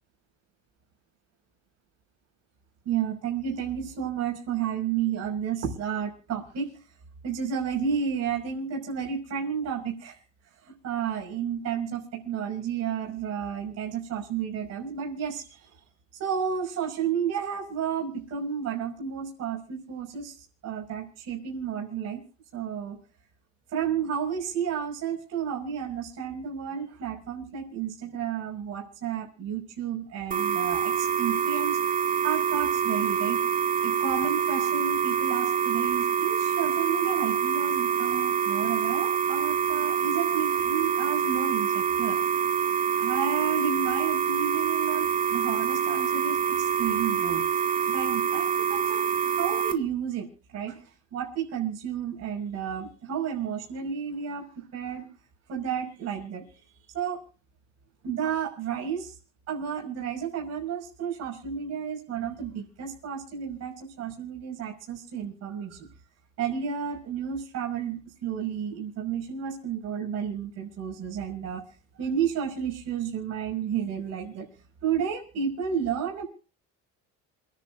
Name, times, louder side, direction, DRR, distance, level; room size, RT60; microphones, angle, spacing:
voice 1, 2.8-6.7 7.2-10.2 10.6-15.8 16.2-20.4 20.6-22.2 22.5-23.0 23.7-31.8 32.2-33.4 33.8-42.2 43.0-47.4 47.9-49.1 49.3-55.1 55.5-56.6 56.9-57.2 58.0-59.2 59.5-65.9 66.4-71.6 71.9-74.5 74.8-76.2, right 7 dB, 55° right, 0 dB, 6.3 m, -31 dB
sound 1, 30.3-49.7, right 8 dB, 25° right, 2.0 m, -26 dB
28.5 x 10.5 x 2.7 m, 0.39 s
cardioid pair, 140°, 32 cm